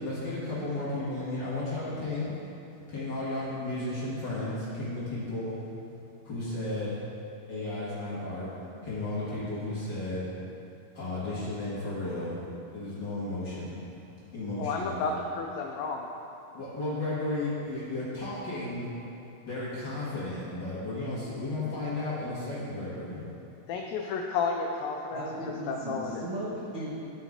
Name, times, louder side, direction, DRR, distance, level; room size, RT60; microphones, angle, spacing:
voice 1, 0.0-2.4 2.7-5.6 6.2-7.0 7.5-8.5 8.8-10.2 10.9-12.4 12.7-13.8 14.1-15.1 16.5-18.9 19.4-23.2, left 2 dB, 50° left, -10 dB, 1.4 m, -34 dB
voice 2, 14.6-16.1 23.7-26.3, left 4 dB, 85° left, 1 dB, 2.0 m, -32 dB
voice 3, 25.1-26.9, right 1 dB, 75° right, -10 dB, 1.1 m, -36 dB
13.5 x 5.3 x 3.6 m, 2.7 s
omnidirectional pair, 4.6 m